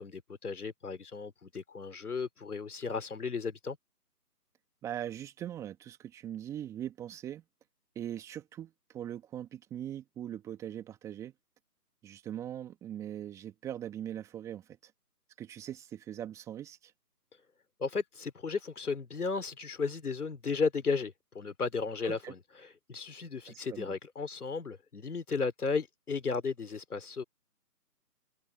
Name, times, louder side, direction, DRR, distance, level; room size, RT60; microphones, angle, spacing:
voice 1, 0.0-3.8 17.8-22.4 22.9-27.2, left 4 dB, 65° left, 3.5 m, -34 dB
voice 2, 4.8-7.4 8.0-11.3 12.0-14.9 15.4-16.9 22.0-22.3 23.5-23.9, right 10 dB, 5° right, 1.7 m, -41 dB
figure-of-eight pair, 155°, 48 cm